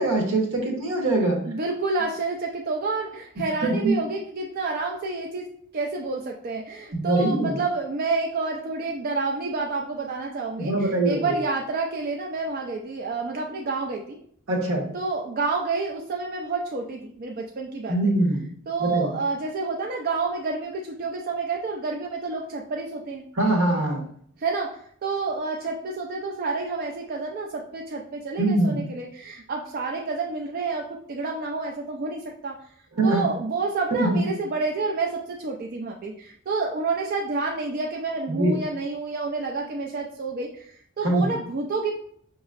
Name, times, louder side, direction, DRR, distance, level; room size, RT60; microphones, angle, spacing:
voice 1, 0.0-1.4 3.6-4.0 6.9-7.5 10.6-11.4 14.5-14.9 17.9-18.4 18.8-19.1 23.4-24.0 28.4-28.8 33.0-33.3 33.9-34.3 38.3-38.6 41.0-41.3, right 2 dB, 80° right, 0 dB, 1.1 m, -23 dB
voice 2, 1.5-10.7 11.0-14.2 14.9-18.0 18.7-23.3 24.4-32.6 33.0-41.9, right 3 dB, 45° right, 0 dB, 0.4 m, -29 dB
5.2 x 3.0 x 2.4 m, 0.62 s
head